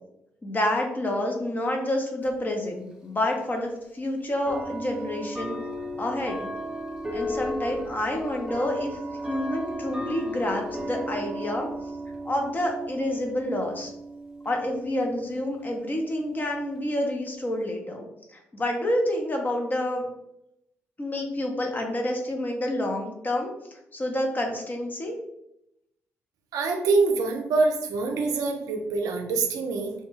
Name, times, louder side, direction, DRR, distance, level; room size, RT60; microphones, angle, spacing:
voice 1, 0.4-5.6 6.0-6.4 7.1-8.9 9.3-11.7 12.2-13.9 14.4-20.1 21.0-23.5 23.9-25.2, left 1 dB, 30° left, 2 dB, 0.7 m, -28 dB
sound 1, 2.2-2.3 3.4-3.5 4.5-17.7, equal, 10° right, 0.7 m, -36 dB
voice 2, 26.5-29.9, right 3 dB, 75° right, 4 dB, 0.4 m, -25 dB
2.2 x 2.2 x 3.0 m, 0.83 s
supercardioid pair, 50°, 6 cm